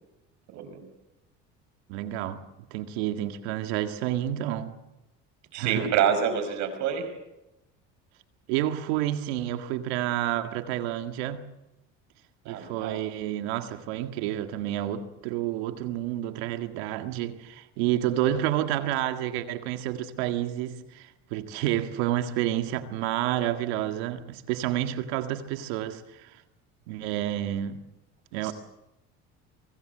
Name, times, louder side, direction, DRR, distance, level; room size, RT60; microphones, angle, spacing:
voice 1, 0.5-0.9 5.5-7.1 12.4-13.0 28.4-28.5, right 8 dB, 65° right, 5.1 m, -27 dB
voice 2, 1.9-2.4 2.7-4.7 5.6-5.9 8.5-11.4 12.5-26.3 26.9-27.8 28.3-28.5, right 12 dB, 85° right, 1.9 m, -29 dB
24.5 x 18.0 x 7.8 m
supercardioid pair, 105°, 31 cm